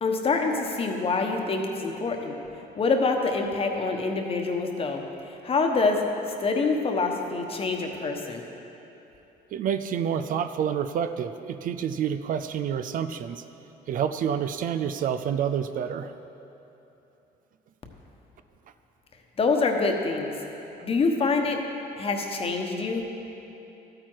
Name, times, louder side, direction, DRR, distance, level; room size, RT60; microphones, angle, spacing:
voice 1, 0.0-2.4 2.8-8.4 19.4-20.3 20.8-21.6 22.0-23.0, left 3 dB, 35° left, 3 dB, 1.2 m, -26 dB
voice 2, 9.5-13.4 13.9-16.1, right 8 dB, 55° right, 10 dB, 0.4 m, -28 dB
13.0 x 8.8 x 4.7 m, 3.0 s
cardioid pair, 110°, 17 cm